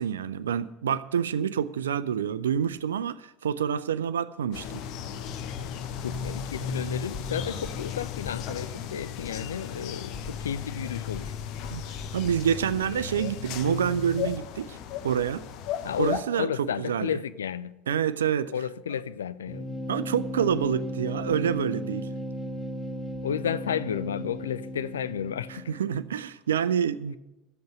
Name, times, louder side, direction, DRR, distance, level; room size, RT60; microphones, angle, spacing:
voice 1, 0.0-4.8 11.7-11.8 12.1-14.8 15.0-15.4 16.0-17.2 17.9-18.5 19.9-22.1 25.5-27.2, right 8 dB, 75° right, 0.4 m, -27 dB
sound 1, 4.5-16.2, left 8 dB, 55° left, 0.8 m, -35 dB
Drum kit, 5.3-13.2, left 3 dB, 30° left, 1.1 m, -46 dB
voice 2, 6.0-11.3 15.8-16.1 16.4-17.7 18.5-19.7 23.2-25.6, left 8 dB, 75° left, 0.4 m, -32 dB
sound 2, 19.5-26.1, equal, 15° left, 1.9 m, -36 dB
12.0 x 7.8 x 6.6 m
figure-of-eight pair, 70°, 0 cm